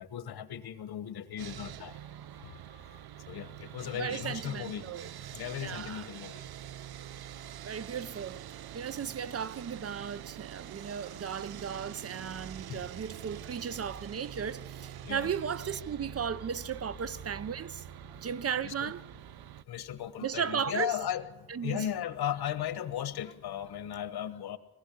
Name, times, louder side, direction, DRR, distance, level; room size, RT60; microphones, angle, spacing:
voice 1, 0.0-2.0 2.4-3.0 3.3-4.9 5.3-6.4 12.7-12.9 15.0-15.3 18.0-18.2 18.6-18.9 19.7-24.6, left 10 dB, 90° left, 1.3 m, -37 dB
Sawing, 1.4-19.6, right 11 dB, 80° right, 0.6 m, -46 dB
voice 2, 3.9-5.1 5.6-6.1 7.6-8.4 8.7-17.8 18.2-19.0 20.2-20.9 21.5-21.9, right 7 dB, 40° right, 0.6 m, -35 dB
sound 1, 11.5-24.0, right 5 dB, 10° right, 1.0 m, -53 dB
20.5 x 16.0 x 8.5 m
wide cardioid pair, 125°, 37 cm